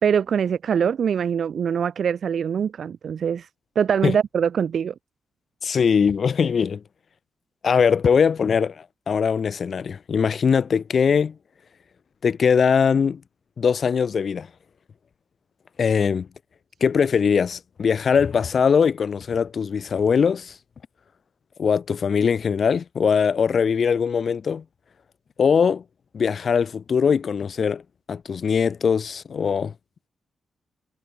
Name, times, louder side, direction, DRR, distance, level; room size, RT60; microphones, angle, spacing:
voice 1, 0.0-3.5 3.8-4.9, right 7 dB, 50° right, 4.3 m, -23 dB
voice 2, 5.6-6.8 7.6-11.4 12.2-13.2 13.6-14.5 15.8-16.3 16.8-20.6 21.6-24.6 25.4-25.8 26.1-27.8 28.1-29.7, left 6 dB, 40° left, 3.4 m, -21 dB
wide cardioid pair, 170°, 0 cm